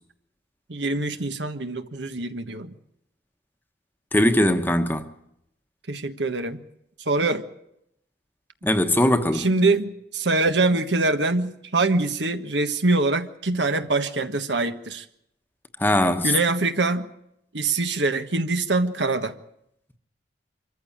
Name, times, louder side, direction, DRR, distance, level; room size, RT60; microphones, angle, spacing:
voice 1, 0.7-2.7 5.9-6.6 7.0-7.4 9.3-15.0 16.2-17.1 17.5-19.3, right 3 dB, 80° right, 1.4 m, -24 dB
voice 2, 4.1-5.1 8.6-9.5 15.8-16.3, left 1 dB, 10° left, 1.1 m, -20 dB
25.0 x 14.5 x 8.7 m
head